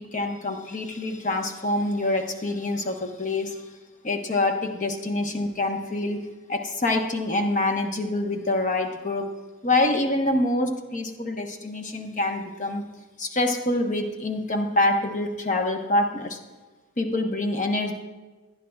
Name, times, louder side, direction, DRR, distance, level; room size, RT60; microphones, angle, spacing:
voice 1, 0.0-3.7 4.0-9.3 9.6-12.8 13.2-16.4 17.0-18.0, left 2 dB, 35° left, 3 dB, 1.1 m, -26 dB
18.0 x 11.0 x 2.4 m, 1.2 s
head